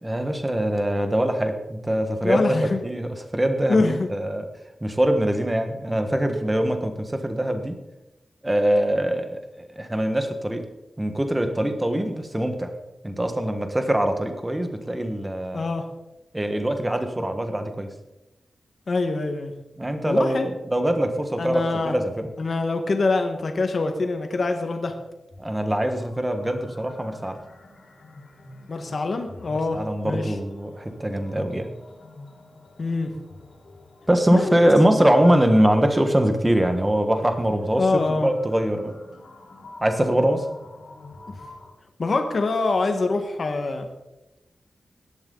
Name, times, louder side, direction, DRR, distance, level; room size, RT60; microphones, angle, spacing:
voice 1, 0.0-4.5 4.8-7.8 8.4-10.6 11.0-12.7 13.0-15.6 16.3-17.9 19.8-22.3 25.4-27.4 29.5-31.7 34.1-39.0 39.8-40.5, right 1 dB, 15° right, 6 dB, 1.5 m, -23 dB
voice 2, 2.2-2.8 3.7-4.1 15.5-15.9 18.9-19.5 20.1-20.5 21.4-21.9 22.4-24.9 28.7-30.3 32.8-33.1 34.3-34.5 34.9-35.1 37.8-38.3 42.0-43.9, left 3 dB, 50° left, 5 dB, 1.6 m, -24 dB
sound 1, 25.3-41.7, left 2 dB, 80° left, 4.0 m, -47 dB
17.0 x 12.0 x 4.0 m, 0.95 s
wide cardioid pair, 150°, 0 cm